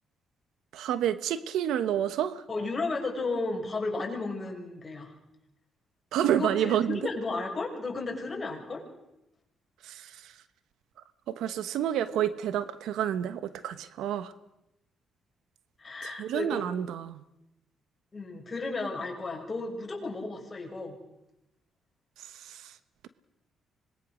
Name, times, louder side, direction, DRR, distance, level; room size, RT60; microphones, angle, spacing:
voice 1, 0.7-2.4 6.1-7.0 9.9-10.0 11.3-14.3 16.0-17.2, right 10 dB, 85° right, 13 dB, 1.2 m, -29 dB
voice 2, 2.5-5.1 6.3-8.8 15.8-16.9 18.1-21.0, left 3 dB, 25° left, 1 dB, 6.4 m, -34 dB
25.5 x 21.0 x 6.4 m, 0.89 s
cardioid pair, 90°, 0 cm